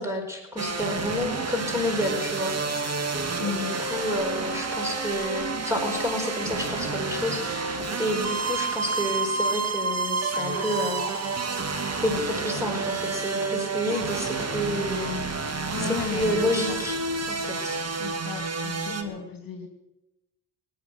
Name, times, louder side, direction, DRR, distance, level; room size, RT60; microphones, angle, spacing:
voice 1, 0.0-2.5 3.4-11.0 12.0-15.2 15.8-17.0 17.3-17.8 18.9-19.1, left 1 dB, 5° right, 3 dB, 5.0 m, -30 dB
sound 1, 0.6-19.0, right 4 dB, 30° right, 1.8 m, -29 dB
voice 2, 3.4-3.8 15.7-16.4 18.0-19.7, left 6 dB, 45° left, 5 dB, 2.4 m, -34 dB
18.0 x 9.6 x 7.9 m, 0.98 s
supercardioid pair, 65°, 49 cm